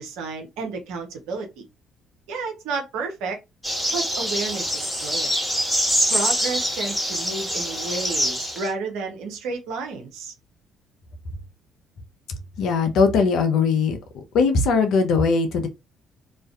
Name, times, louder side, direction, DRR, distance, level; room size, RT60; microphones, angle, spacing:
voice 1, 0.0-1.7 2.3-3.4 3.9-5.3 6.1-10.3, right 4 dB, 70° right, 0.6 m, -31 dB
sound 1, 3.6-8.7, equal, ahead, 1.2 m, -25 dB
voice 2, 12.6-14.0 14.3-15.7, left 4 dB, 60° left, 0.5 m, -20 dB
2.4 x 2.2 x 2.4 m
figure-of-eight pair, 45°, 0 cm